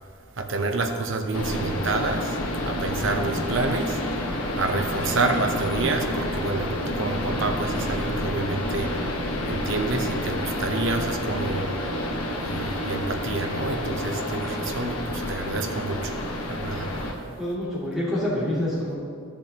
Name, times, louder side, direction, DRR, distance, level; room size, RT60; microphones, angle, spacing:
voice 1, 0.4-2.4 2.6-4.0 4.6-8.9 9.5-11.7 12.4-16.1 16.5-16.9, right 3 dB, 60° right, 5 dB, 0.8 m, -28 dB
sound 1, 1.3-17.1, left 1 dB, 85° left, 1.2 m, -29 dB
voice 2, 17.2-19.0, left 1 dB, ahead, -11 dB, 2.4 m, -27 dB
13.5 x 7.0 x 2.9 m, 2.2 s
head